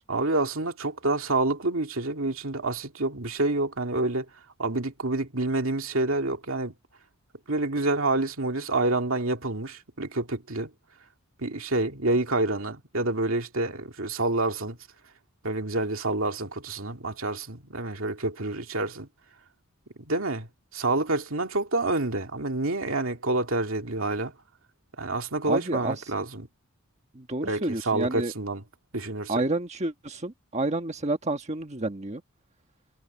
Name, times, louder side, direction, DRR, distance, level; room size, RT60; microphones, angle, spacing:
voice 1, 0.1-4.3 4.6-6.7 7.5-10.7 11.4-14.8 15.4-19.1 20.0-20.5 20.7-24.3 25.0-26.5 27.4-28.6 28.9-29.4, right 2 dB, 65° right, 2.7 m, -28 dB
voice 2, 25.5-26.0 27.1-28.3 29.3-32.2, right 2 dB, 30° right, 1.4 m, -29 dB
head